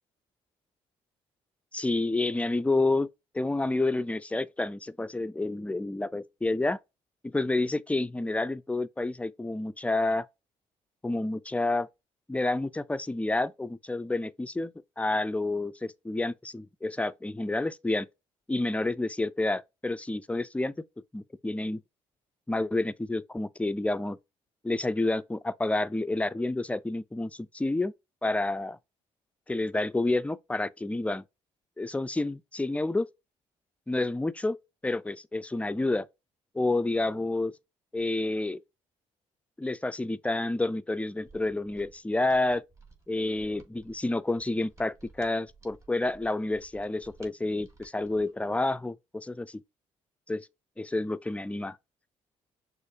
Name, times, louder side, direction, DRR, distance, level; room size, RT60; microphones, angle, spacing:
voice 1, 1.7-3.1 3.3-6.8 7.2-10.2 11.0-11.9 12.3-18.1 18.5-20.7 21.1-21.8 22.5-24.2 24.6-27.9 28.2-28.8 29.5-31.2 31.8-33.1 33.9-34.6 34.8-36.1 36.5-37.5 37.9-38.6 39.6-42.6 43.1-49.6 50.3-50.5 50.8-51.8, left 2 dB, 10° left, 0.4 m, -29 dB
Mechanisms, 41.2-48.4, right 3 dB, 20° right, 1.7 m, -57 dB
6.4 x 2.5 x 2.7 m
supercardioid pair, 65°, 14 cm